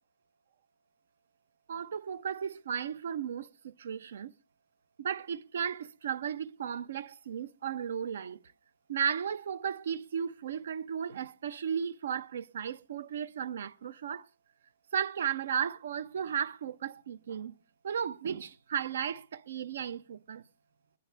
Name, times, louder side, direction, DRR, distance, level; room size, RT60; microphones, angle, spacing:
voice 1, 1.7-4.3 5.0-8.4 8.9-14.3 14.9-17.5 17.8-20.4, right 8 dB, 65° right, 0.7 m, -35 dB
23.5 x 10.5 x 3.3 m
hypercardioid pair, 175°, 0 cm